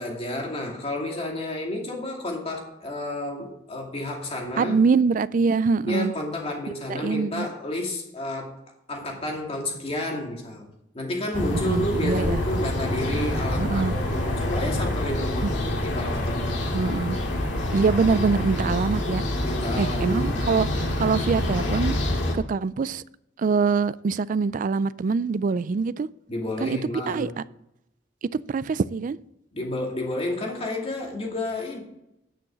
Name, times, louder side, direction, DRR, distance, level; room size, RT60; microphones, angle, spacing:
voice 1, 0.0-4.8 5.9-8.6 8.9-10.7 10.9-16.5 19.4-20.5 26.3-27.4 29.5-31.8, left 1 dB, 35° left, 0 dB, 2.4 m, -31 dB
voice 2, 4.6-6.1 6.9-7.5 11.5-12.4 13.6-13.9 15.4-15.5 16.7-17.2 17.7-19.2 19.8-22.0 22.3-23.0 23.4-26.1 26.6-26.8 27.1-27.4 28.3-29.2, right 4 dB, 45° right, 18 dB, 0.3 m, -24 dB
sound 1, 11.3-22.4, left 1 dB, 75° left, 2.2 m, -26 dB
10.0 x 6.3 x 6.2 m, 0.84 s
head